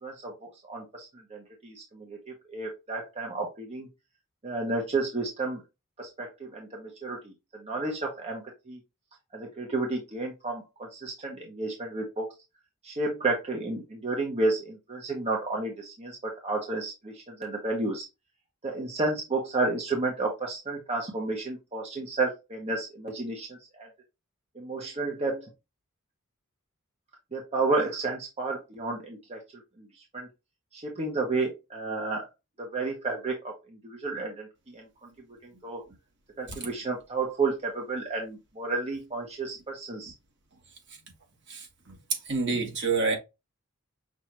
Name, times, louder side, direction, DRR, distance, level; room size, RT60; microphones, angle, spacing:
voice 1, 0.0-0.3 0.7-2.2 2.5-3.9 4.4-5.6 6.0-8.8 9.3-12.3 12.8-18.1 18.6-23.9 24.5-25.5 27.3-29.4 29.8-29.9 30.1-30.3 30.7-32.3 32.6-34.9 35.4-35.8 36.4-40.1, right 3 dB, 30° right, 1.1 m, -31 dB
voice 2, 41.5-42.0 42.2-43.2, right 4 dB, 55° right, 1.7 m, -28 dB
6.1 x 2.7 x 3.0 m
head